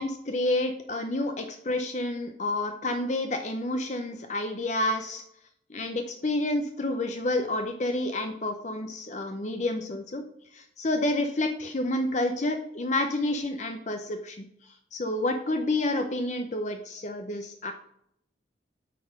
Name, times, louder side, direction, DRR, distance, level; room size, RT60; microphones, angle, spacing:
voice 1, 0.0-5.2 5.7-10.2 10.5-14.4 14.9-17.7, left 1 dB, 40° left, 5 dB, 0.6 m, -29 dB
9.1 x 4.1 x 6.4 m, 0.75 s
head